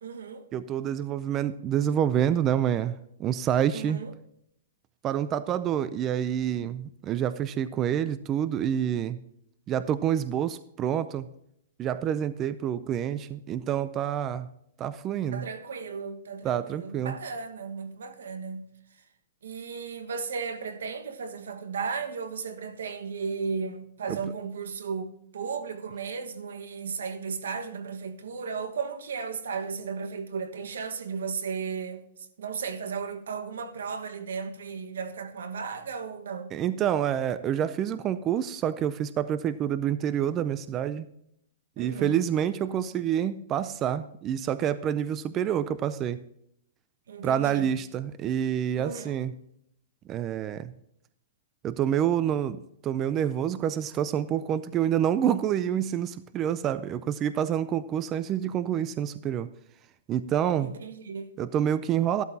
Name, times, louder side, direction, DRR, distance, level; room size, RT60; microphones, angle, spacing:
voice 1, 0.0-0.5 3.7-4.1 15.3-18.6 19.4-32.0 32.4-36.5 41.8-42.2 47.1-47.7 48.8-49.1 60.6-61.3, right 5 dB, 90° right, 1.4 m, -35 dB
voice 2, 0.5-4.0 5.0-9.2 9.7-11.3 11.8-14.5 14.8-15.4 16.4-17.2 24.1-24.2 36.5-41.1 41.8-46.2 47.2-49.3 50.1-50.7 51.6-59.5 60.1-60.7 61.4-62.2, right 10 dB, 20° right, 0.5 m, -27 dB
14.0 x 12.5 x 2.8 m
hypercardioid pair, 160°, 0 cm